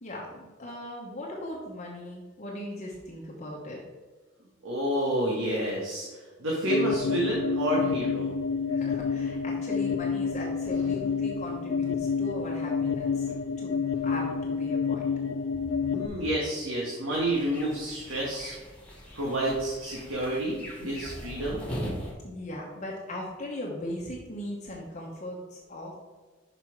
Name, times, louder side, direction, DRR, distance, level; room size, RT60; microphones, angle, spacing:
voice 1, 0.0-3.8 8.7-13.3 13.6-13.8 14.0-15.1 22.2-26.0, left 1 dB, 35° left, -3 dB, 1.0 m, -38 dB
voice 2, 4.6-8.3 15.8-18.5 19.1-21.7, right 1 dB, 80° right, -4 dB, 1.6 m, -29 dB
sound 1, 6.6-16.1, left 6 dB, 80° left, 0.4 m, -29 dB
sound 2, 17.1-22.1, equal, 5° left, 1.8 m, -40 dB
5.9 x 5.7 x 4.6 m, 1.3 s
head